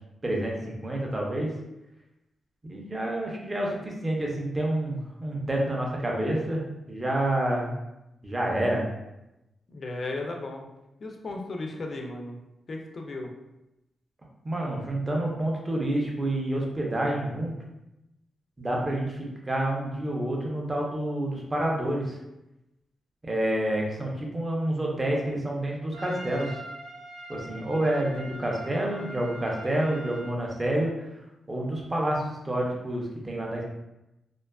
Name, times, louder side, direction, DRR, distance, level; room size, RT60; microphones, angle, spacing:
voice 1, 0.2-1.5 2.6-7.7 8.2-8.9 14.4-17.5 18.6-22.2 23.2-26.6 27.3-31.1 31.5-33.6, right 1 dB, 20° right, -2 dB, 0.5 m, -28 dB
voice 2, 9.7-10.7 11.0-12.4 12.7-13.3, left 2 dB, 40° left, 2 dB, 0.3 m, -35 dB
Trumpet, 25.9-30.4, right 1 dB, 85° right, 0.8 m, -43 dB
2.6 x 2.3 x 2.2 m, 0.92 s
wide cardioid pair, 155°, 0 cm